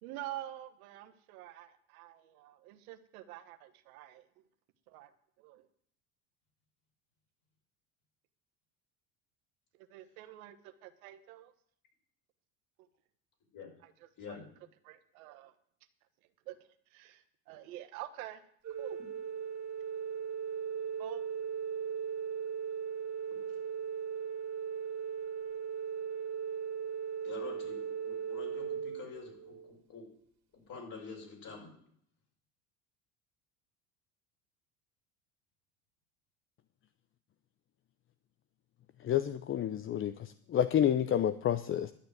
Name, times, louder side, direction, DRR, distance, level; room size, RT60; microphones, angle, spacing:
voice 1, 0.0-4.3 4.9-5.1 5.4-5.7 9.8-11.5 13.8-13.9 14.2-14.4 14.8-15.5 16.5-18.4 18.8-19.0 21.0-21.2, right 14 dB, 80° right, 1.3 m, -47 dB
voice 2, 14.2-14.5 23.5-23.6 27.2-30.0 30.7-31.7, left 4 dB, 50° left, 5.7 m, -47 dB
Organ, 18.6-29.7, right 7 dB, 40° right, 2.6 m, -38 dB
voice 3, 39.0-41.9, left 10 dB, 30° left, 0.6 m, -29 dB
11.5 x 6.8 x 9.1 m
hypercardioid pair, 85°, 42 cm